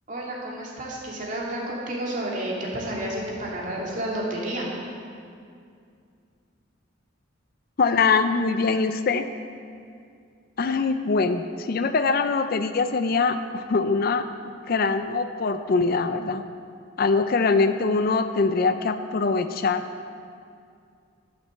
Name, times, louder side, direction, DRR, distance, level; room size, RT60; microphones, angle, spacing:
voice 1, 0.1-4.7, right 1 dB, 40° right, -4 dB, 2.5 m, -30 dB
voice 2, 7.8-9.2 10.6-14.2 14.7-16.4 17.0-19.8, left 4 dB, 45° left, 9 dB, 0.4 m, -23 dB
13.0 x 6.0 x 7.6 m, 2.3 s
head